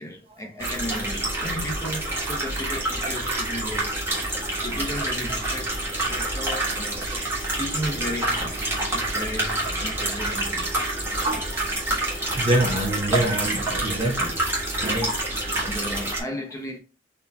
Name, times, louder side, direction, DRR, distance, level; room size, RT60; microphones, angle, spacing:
voice 1, 0.0-4.1 4.6-5.8 6.1-7.1 7.6-10.9 11.3-11.4 12.6-12.9 15.5-16.8, equal, 15° left, 0.7 m, -35 dB
sound 1, 0.6-16.2, right 1 dB, 15° right, 1.3 m, -27 dB
voice 2, 11.2-11.7 12.4-14.4 14.8-15.1 15.8-15.9, right 1 dB, 30° right, 0.8 m, -25 dB
4.2 x 2.8 x 3.3 m
head